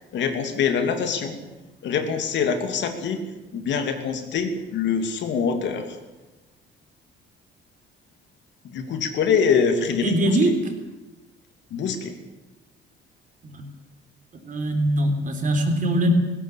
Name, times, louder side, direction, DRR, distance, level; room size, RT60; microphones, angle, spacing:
voice 1, 0.1-1.4 1.8-3.2 3.5-5.9 8.7-10.4 11.7-12.1, left 6 dB, 65° left, 6 dB, 2.8 m, -24 dB
voice 2, 10.0-10.7 13.4-13.6 14.4-16.1, right 1 dB, 40° right, 5 dB, 3.9 m, -22 dB
18.5 x 16.5 x 8.7 m, 1.1 s
cardioid pair, 130°, 20 cm